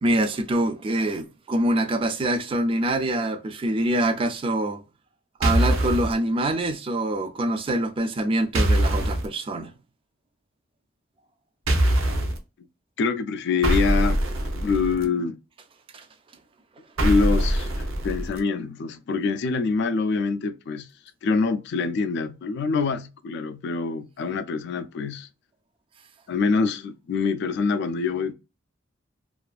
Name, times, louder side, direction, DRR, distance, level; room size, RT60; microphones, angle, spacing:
voice 1, 0.0-4.8 5.4-9.7 15.9-16.1, right 1 dB, 25° right, 0.3 m, -25 dB
sound 1, 5.4-6.1 8.5-9.3 11.7-12.4 13.6-15.0 17.0-18.4, right 1 dB, 85° right, 0.6 m, -22 dB
voice 2, 13.0-14.2 14.6-15.4 17.0-20.9 21.2-25.3 26.3-28.3, left 4 dB, 60° left, 0.3 m, -25 dB
2.4 x 2.3 x 2.3 m
head